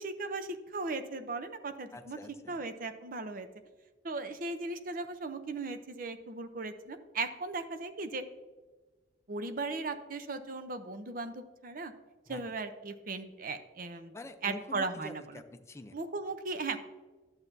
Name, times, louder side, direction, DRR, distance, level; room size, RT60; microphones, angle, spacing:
voice 1, 0.0-2.2 2.5-3.5 4.0-8.2 9.3-11.9 12.3-14.1 14.4-15.2 15.9-16.8, right 3 dB, 50° right, 10 dB, 0.6 m, -37 dB
voice 2, 1.9-2.6 12.3-12.4 14.1-16.0, left 1 dB, 15° left, 7 dB, 0.5 m, -46 dB
11.0 x 7.1 x 2.7 m, 1.3 s
head